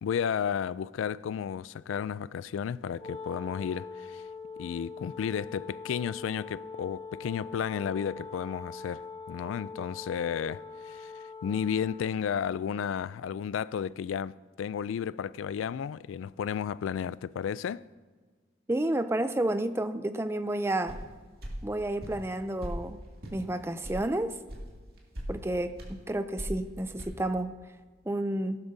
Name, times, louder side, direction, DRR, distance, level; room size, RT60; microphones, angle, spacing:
voice 1, 0.0-4.2 4.6-17.8, left 7 dB, 85° left, 0.3 m, -33 dB
Wind instrument woodwind instrument, 3.0-12.2, left 4 dB, 20° left, 0.9 m, -43 dB
voice 2, 18.7-21.0 21.6-23.0 23.3-24.4 25.3-27.6 28.1-28.6, right 1 dB, 15° right, 0.4 m, -30 dB
sound 1, 20.9-21.1 21.4-21.6 22.0-22.2 22.6-22.8 23.2-23.4 23.8-24.0 24.5-24.6 25.0-25.3 25.8-25.9 26.4-26.6 27.0-27.1, equal, 50° right, 2.3 m, -38 dB
17.0 x 12.0 x 2.7 m
head